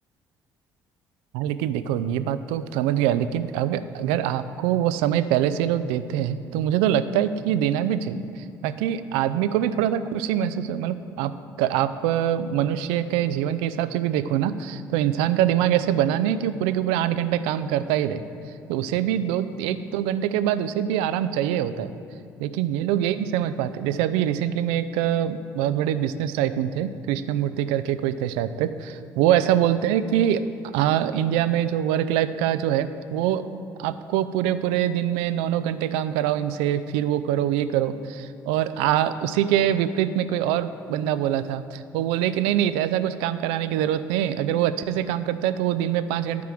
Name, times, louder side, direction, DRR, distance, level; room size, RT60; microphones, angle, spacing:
voice 1, 1.3-11.3 11.6-18.2 18.7-21.9 22.4-30.4 30.7-46.4, right 11 dB, 70° right, 13 dB, 0.4 m, -24 dB
9.4 x 4.7 x 7.5 m, 2.7 s
hypercardioid pair, 50°, 10 cm